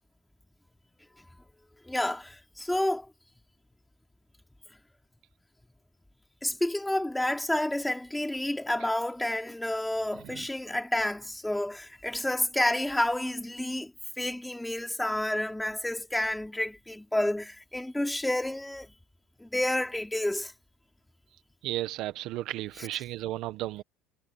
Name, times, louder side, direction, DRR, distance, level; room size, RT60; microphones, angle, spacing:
voice 1, 1.9-3.1 6.4-13.9 14.2-18.9 19.4-20.5, left 1 dB, 5° left, 3.1 m, -30 dB
voice 2, 10.1-10.5 21.6-23.8, right 15 dB, 60° right, 1.2 m, -34 dB
cardioid pair, 135°, 0 cm